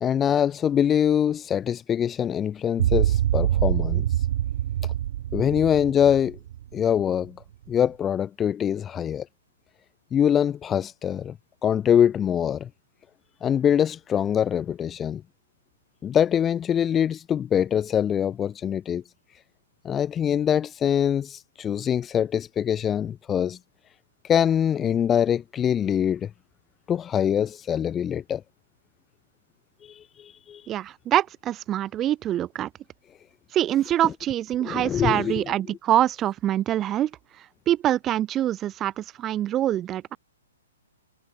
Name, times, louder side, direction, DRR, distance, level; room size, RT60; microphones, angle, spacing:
voice 1, 0.0-4.0 5.3-6.4 6.7-7.3 7.7-9.3 10.1-11.3 11.6-12.7 13.4-15.2 16.0-19.0 19.8-23.6 24.2-26.3 26.9-28.4 29.8-30.6 34.0-34.1 34.6-35.5, left 9 dB, 15° left, 0.5 m, -24 dB
sound 1, 2.8-7.1, right 12 dB, 55° right, 2.4 m, -25 dB
voice 2, 30.7-32.7 33.5-37.1 37.7-40.2, right 12 dB, 20° right, 1.4 m, -25 dB
hypercardioid pair, 135°, 0 cm